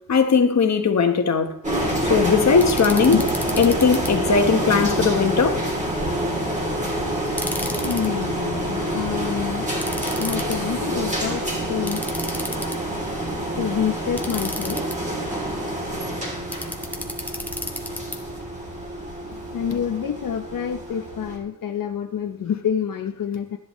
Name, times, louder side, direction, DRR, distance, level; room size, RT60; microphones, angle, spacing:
voice 1, 0.1-1.5 2.0-3.2 3.6-5.6, left 5 dB, 50° left, 1.2 m, -18 dB
sound 1, 1.6-21.4, right 1 dB, 20° right, 3.0 m, -27 dB
sound 2, 2.6-4.1 7.3-8.1 9.8-10.6 11.9-13.0 14.2-14.9 16.5-18.2, left 1 dB, 5° left, 1.2 m, -33 dB
voice 2, 7.8-9.7 10.2-12.1 13.6-14.9 19.5-23.6, left 8 dB, 70° left, 0.8 m, -27 dB
13.0 x 10.5 x 3.1 m
wide cardioid pair, 145°, 34 cm